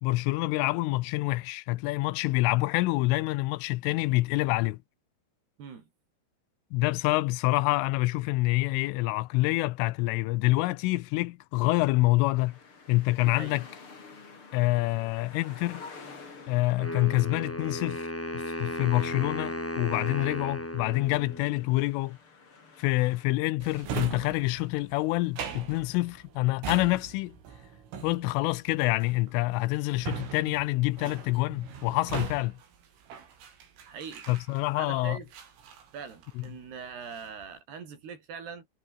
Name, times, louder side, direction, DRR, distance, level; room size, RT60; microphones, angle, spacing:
voice 1, 0.0-4.8 6.7-12.6 12.9-13.6 14.5-15.8 16.5-22.2 22.8-27.4 28.0-32.6 34.3-35.2 36.4-36.5, left 20 dB, 85° left, 3.3 m, -27 dB
voice 2, 5.6-5.9 13.2-13.6 33.9-34.3 34.8-35.3 35.9-38.7, right 6 dB, 55° right, 6.2 m, -42 dB
sound 1, 12.3-23.2, left 4 dB, 30° left, 4.2 m, -51 dB
Wind instrument woodwind instrument, 16.8-21.8, left 1 dB, 5° left, 2.1 m, -35 dB
Drawer open or close, 23.6-34.9 35.3-36.6 36.9-37.5, right 7 dB, 85° right, 7.4 m, -41 dB
omnidirectional pair, 5.7 m